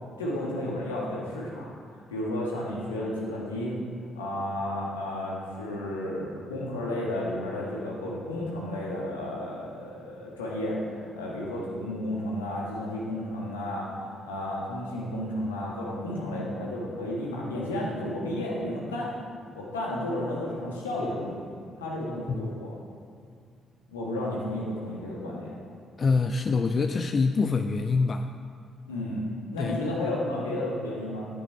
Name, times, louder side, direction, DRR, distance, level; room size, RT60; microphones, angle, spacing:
voice 1, 0.2-1.7 2.1-3.7 4.1-13.9 14.2-19.1 19.5-21.4 21.8-22.7 23.9-25.5 28.9-31.3, left 1 dB, 75° left, -4 dB, 1.6 m, -32 dB
voice 2, 26.0-28.3 29.6-29.8, left 4 dB, 40° left, 7 dB, 0.4 m, -25 dB
10.5 x 8.5 x 4.6 m, 2.1 s
figure-of-eight pair, 40°, 0 cm